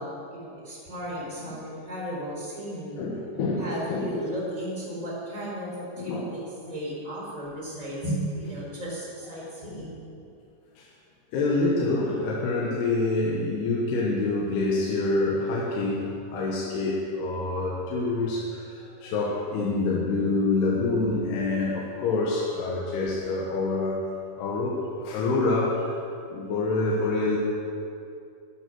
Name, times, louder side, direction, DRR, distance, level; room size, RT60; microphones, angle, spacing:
voice 1, 0.0-3.0 3.6-10.0, equal, 10° right, -5 dB, 3.0 m, -35 dB
voice 2, 3.0-4.2 6.0-6.3 9.3-9.5 10.8-10.9 11.3-24.0 24.4-25.9 26.3-27.4, left 3 dB, 70° left, -3 dB, 3.1 m, -26 dB
12.5 x 12.0 x 6.2 m, 2.5 s
omnidirectional pair, 5.4 m